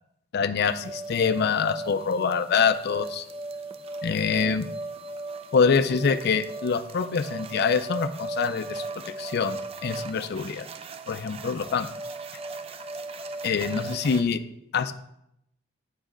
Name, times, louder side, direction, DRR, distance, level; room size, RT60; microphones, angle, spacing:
voice 1, 0.3-3.2 4.0-4.6 5.5-8.9 9.2-10.7 11.1-11.9 13.4-14.4 14.7-14.9, left 6 dB, 55° left, 11 dB, 0.4 m, -25 dB
sound 1, 0.6-14.2, right 2 dB, 30° right, 0.4 m, -37 dB
8.2 x 5.1 x 3.8 m, 0.79 s
head